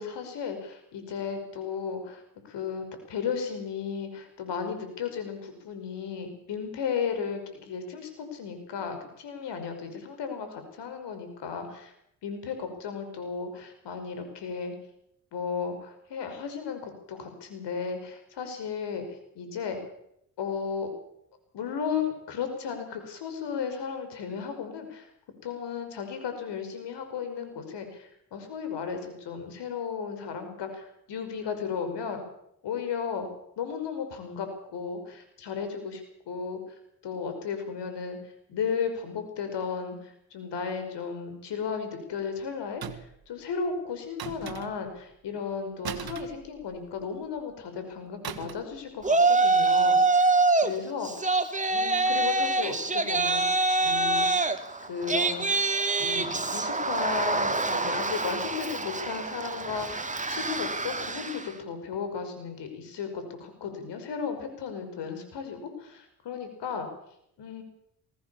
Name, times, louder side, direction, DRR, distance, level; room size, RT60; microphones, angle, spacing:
voice 1, 0.0-2.2 2.5-11.9 12.2-14.7 15.3-19.8 20.4-20.9 21.5-25.1 25.4-32.2 32.6-33.3 33.6-36.6 37.0-38.2 38.5-50.3 50.6-51.1 51.7-54.5 54.8-55.6 56.0-66.9 67.4-67.6, left 6 dB, 70° left, 7 dB, 5.8 m, -35 dB
sound 1, 42.8-43.3 44.2-45.0 45.8-47.0 48.2-48.8 49.0-49.2, right 9 dB, 55° right, 2.0 m, -39 dB
Yell, 49.0-50.7 51.0-61.5, right 3 dB, 15° right, 2.3 m, -25 dB
21.5 x 17.5 x 7.2 m, 0.74 s
supercardioid pair, 60°, 43 cm